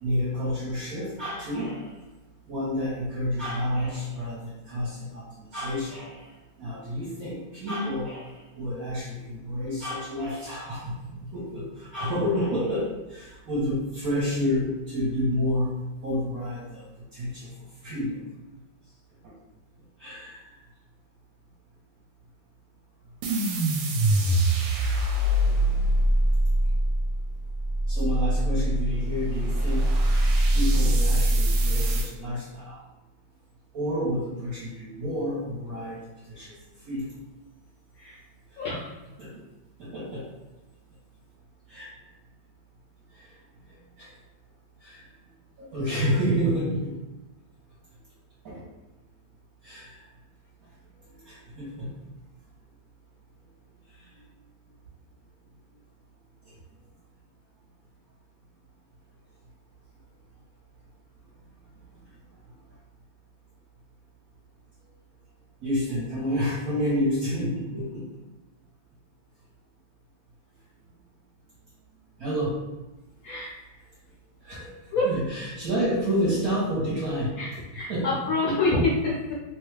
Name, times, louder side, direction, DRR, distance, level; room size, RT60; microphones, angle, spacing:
voice 1, 0.0-1.9 2.5-5.2 5.5-6.3 6.6-15.7 16.0-16.8 17.1-17.5 17.8-18.2 20.0-20.4 27.9-29.9 30.5-32.8 33.7-36.0 36.3-36.5 36.9-37.1 39.2-39.3 39.8-40.3 41.7-41.9 44.0-44.1 44.8-45.0 45.6-46.9 48.4-48.6 49.6-50.0 51.2-51.9 65.6-68.0 72.2-72.6 74.4-74.7 75.0-78.2 78.5-78.6, equal, 55° right, -9 dB, 1.2 m, -29 dB
sound 1, 23.2-32.1, right 1 dB, 75° right, 1.2 m, -23 dB
voice 2, 38.6-38.9 73.2-73.5 74.9-75.1 77.4-77.5 77.7-79.3, left 2 dB, 70° left, -4 dB, 0.8 m, -26 dB
3.1 x 2.3 x 3.2 m, 1.1 s
omnidirectional pair, 2.1 m